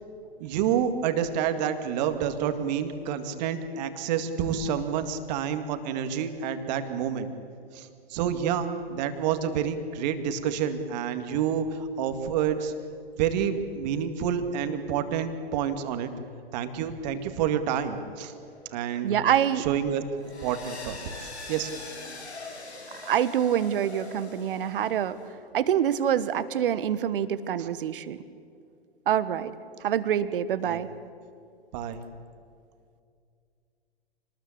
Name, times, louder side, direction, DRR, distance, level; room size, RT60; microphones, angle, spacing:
voice 1, 0.4-7.3 7.7-12.7 13.2-16.1 16.5-18.3 18.7-19.2 19.6-21.7 27.6-27.7 30.6-30.8 31.7-32.0, right 8 dB, 40° right, 8 dB, 2.1 m, -28 dB
sound 1, 18.2-25.3, left 3 dB, 85° left, 6.3 m, -44 dB
voice 2, 19.0-19.7 23.0-25.2 25.5-28.2 29.1-29.5 29.8-30.9, right 9 dB, 55° right, 15 dB, 1.3 m, -26 dB
25.5 x 20.0 x 8.6 m, 2.4 s
figure-of-eight pair, 120°, 32 cm